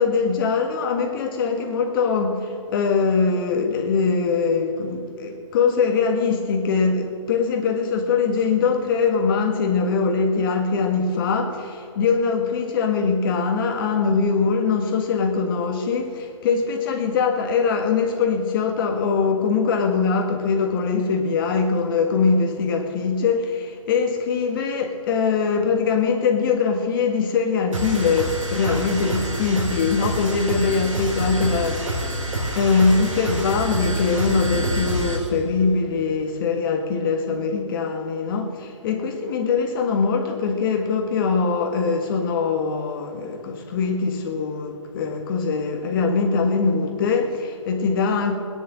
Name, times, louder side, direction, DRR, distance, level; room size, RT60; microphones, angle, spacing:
voice 1, 0.0-32.2 32.6-48.4, left 5 dB, 45° left, 3 dB, 1.7 m, -22 dB
sound 1, 27.7-35.3, right 1 dB, 85° right, 4.5 m, -27 dB
18.0 x 10.0 x 7.6 m, 2.6 s
hypercardioid pair, 135°, 16 cm